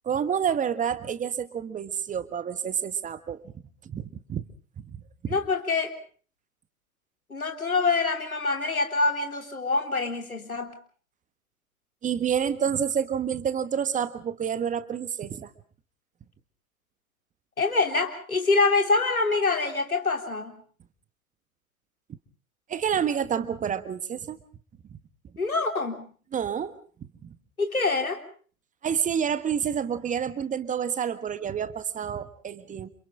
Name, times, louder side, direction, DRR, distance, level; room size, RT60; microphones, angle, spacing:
voice 1, 0.0-3.5 3.8-4.5 4.8-5.0 5.2-5.3 12.0-15.5 22.7-24.4 26.3-26.7 27.0-27.3 28.8-32.9, right 8 dB, 20° right, 13 dB, 1.4 m, -28 dB
voice 2, 5.3-5.9 7.3-10.7 17.6-20.6 25.4-26.0 27.6-28.2, left 3 dB, 90° left, 6 dB, 3.7 m, -25 dB
29.5 x 27.0 x 3.8 m, 0.44 s
figure-of-eight pair, 100°, 41 cm